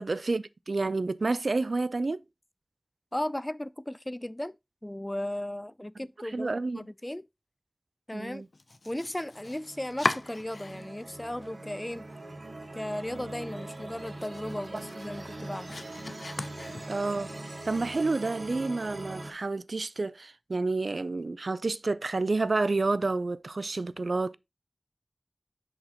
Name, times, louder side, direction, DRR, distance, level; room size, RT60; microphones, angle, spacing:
voice 1, 0.0-2.2 6.3-6.8 8.1-8.5 14.7-14.8 16.9-17.3 17.7-24.4, right 3 dB, 90° right, 0.3 m, -29 dB
voice 2, 3.1-4.5 4.8-7.2 8.1-8.4 8.9-12.0 12.7-15.7, left 1 dB, 20° left, 0.3 m, -36 dB
Domestic sounds home sounds, 8.5-11.1 11.4-12.2 12.5-12.6 13.0-13.1 13.5-17.2, left 2 dB, 80° left, 0.5 m, -38 dB
sound 1, 9.3-19.3, right 2 dB, 75° right, 1.2 m, -42 dB
7.9 x 6.2 x 2.9 m
wide cardioid pair, 45°, 0 cm